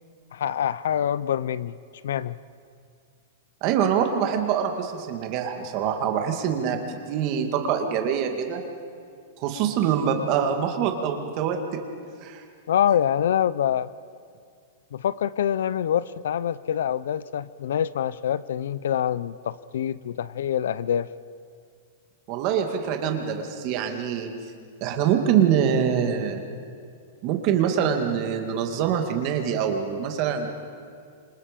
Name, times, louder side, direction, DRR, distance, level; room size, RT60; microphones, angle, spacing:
voice 1, 0.3-1.8 2.0-2.4 12.7-13.9 14.9-21.1, left 9 dB, 70° left, 18 dB, 0.6 m, -25 dB
voice 2, 3.6-8.6 9.4-11.8 12.2-12.4 22.3-24.3 24.8-26.4 27.2-30.5, right 8 dB, 30° right, 4 dB, 2.1 m, -24 dB
27.5 x 26.0 x 5.3 m, 2.3 s
supercardioid pair, 180°, 0 cm